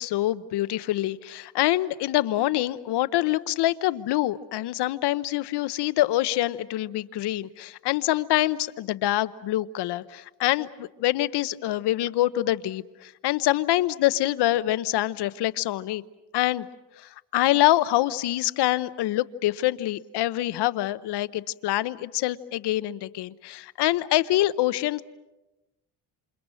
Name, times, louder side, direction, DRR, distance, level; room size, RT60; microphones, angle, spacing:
voice 1, 0.0-16.0 16.3-16.7 17.0-25.0, left 15 dB, 80° left, 16 dB, 0.9 m, -25 dB
28.5 x 28.5 x 6.3 m, 1.0 s
cardioid pair, 120°, 40 cm